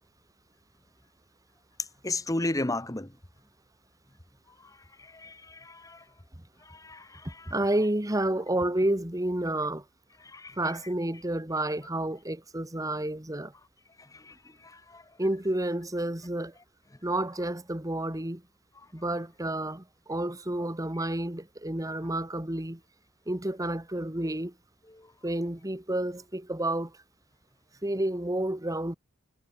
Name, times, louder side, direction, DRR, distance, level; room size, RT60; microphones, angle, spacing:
voice 1, 2.0-3.1 5.0-6.0 6.7-7.3 10.2-10.6 14.1-14.3 14.6-15.0 25.0-25.1, left 2 dB, 15° left, 1.3 m, -34 dB
voice 2, 7.5-9.8 10.6-13.5 15.2-16.5 17.0-18.4 18.9-22.8 23.3-24.5 25.2-26.9 27.8-29.0, right 1 dB, 15° right, 1.6 m, -30 dB
head